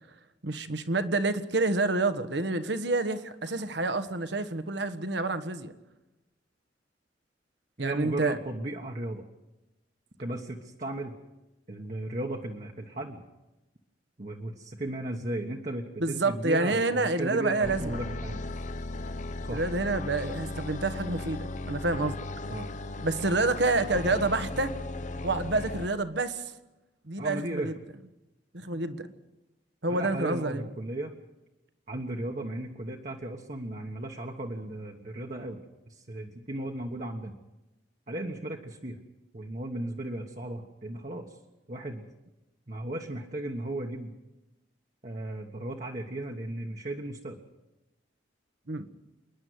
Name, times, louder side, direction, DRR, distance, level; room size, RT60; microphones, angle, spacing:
voice 1, 0.4-5.7 7.8-8.4 16.0-18.0 19.5-22.2 23.0-24.8 25.2-26.4 27.1-27.7 28.5-29.1 29.8-30.7 48.7-48.9, right 2 dB, 65° right, 11 dB, 1.3 m, -28 dB
voice 2, 7.8-9.3 10.2-11.1 11.7-13.2 14.2-18.4 19.5-19.6 22.5-22.7 27.2-27.7 29.9-31.1 31.9-35.6 35.9-37.3 38.1-39.0 39.3-41.3 41.7-42.0 42.7-44.1 45.0-47.4, right 1 dB, 40° right, 0 dB, 1.4 m, -35 dB
sound 1, 17.6-25.9, left 2 dB, 40° left, 0.8 m, -36 dB
27.5 x 10.5 x 9.6 m, 1.0 s
head